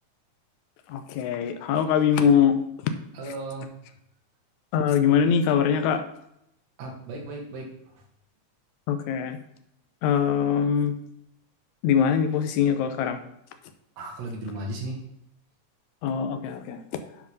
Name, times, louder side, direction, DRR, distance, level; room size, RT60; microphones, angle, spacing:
voice 1, 0.9-2.6 2.8-2.9 4.7-6.0 8.9-9.4 10.0-10.9 11.8-13.2 16.0-16.8, left 7 dB, 80° left, 8 dB, 2.2 m, -22 dB
voice 2, 3.1-3.7 6.8-7.7 14.0-15.0, right 2 dB, 65° right, -1 dB, 2.9 m, -35 dB
9.3 x 5.0 x 5.3 m, 0.78 s
omnidirectional pair, 3.3 m